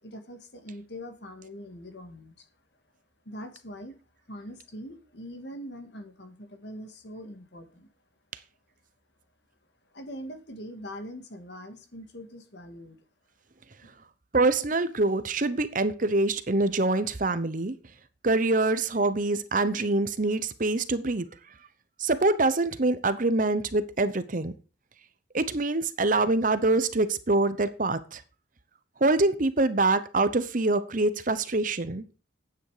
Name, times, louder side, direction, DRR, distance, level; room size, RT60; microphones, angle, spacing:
voice 1, 0.0-2.5 3.3-4.0 4.3-7.9 9.9-13.0, equal, 65° left, 7 dB, 1.9 m, -42 dB
voice 2, 14.3-17.7 18.2-21.3 22.0-24.5 25.3-28.2 29.0-32.0, right 2 dB, 45° right, 13 dB, 0.9 m, -25 dB
11.0 x 9.2 x 4.9 m, 0.34 s
head